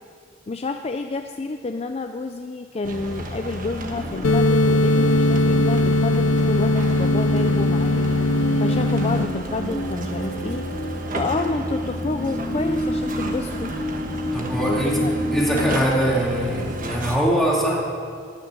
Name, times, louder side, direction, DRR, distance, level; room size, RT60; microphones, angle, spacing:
voice 1, 0.5-8.1 8.6-10.7 11.1-13.7 14.7-15.1, left 3 dB, 30° left, 6 dB, 0.4 m, -29 dB
sound 1, 2.8-17.2, right 1 dB, 45° right, 1.4 m, -32 dB
sound 2, 4.0-15.8, equal, 55° left, 2.9 m, -29 dB
sound 3, 4.2-9.2, left 2 dB, 80° left, 0.5 m, -20 dB
voice 2, 14.3-15.0 15.3-17.8, equal, ahead, -5 dB, 2.8 m, -22 dB
16.0 x 6.5 x 9.6 m, 2.4 s
head